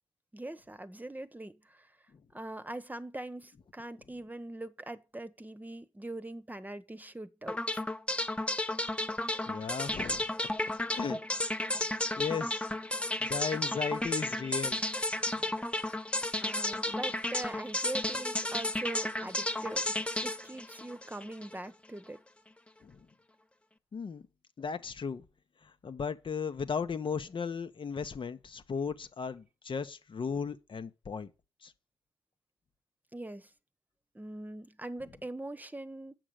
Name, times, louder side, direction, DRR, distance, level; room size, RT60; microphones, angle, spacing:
voice 1, 0.3-1.9 2.3-7.8 16.4-22.2 33.1-33.5 34.1-36.2, right 1 dB, 15° right, 1.1 m, -42 dB
sound 1, 7.5-21.6, left 1 dB, 10° left, 1.0 m, -33 dB
voice 2, 9.5-10.2 10.9-11.2 11.8-11.9 12.2-12.7 13.2-14.8 15.4-15.5 22.8-23.0 23.9-24.2 24.6-25.2 25.6-31.3 31.6-31.7, left 6 dB, 55° left, 1.1 m, -36 dB
7.7 x 6.0 x 6.6 m
supercardioid pair, 45°, 10 cm